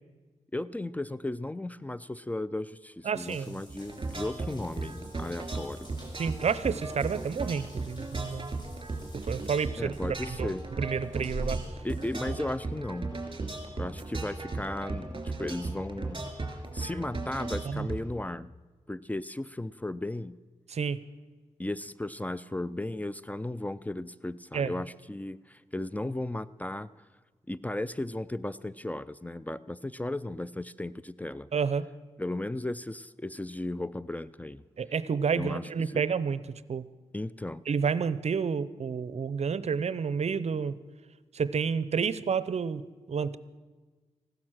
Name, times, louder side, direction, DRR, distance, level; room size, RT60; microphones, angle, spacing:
voice 1, 0.5-5.9 9.8-10.6 11.8-13.2 13.8-18.5 18.9-20.4 21.6-27.1 27.5-31.5 32.2-34.6 35.3-35.9 37.1-37.6, left 1 dB, 10° left, 18 dB, 0.4 m, -35 dB
Water tap faucet / Bathtub (filling or washing) / Drip, 3.1-13.0, right 1 dB, 35° left, 5.9 m, -46 dB
voice 2, 3.1-3.6 6.2-8.5 9.3-9.9 10.4-10.5 10.8-11.6 17.7-17.9 20.7-21.0 24.5-24.7 31.5-31.9 34.8-36.4 36.7-36.9 37.7-40.7 41.3-42.8 43.1-43.4, right 6 dB, 60° right, 16 dB, 0.6 m, -29 dB
sound 1, 3.7-18.0, right 3 dB, 40° right, 3.0 m, -36 dB
15.5 x 12.0 x 6.3 m, 1.3 s
cardioid pair, 60°, 12 cm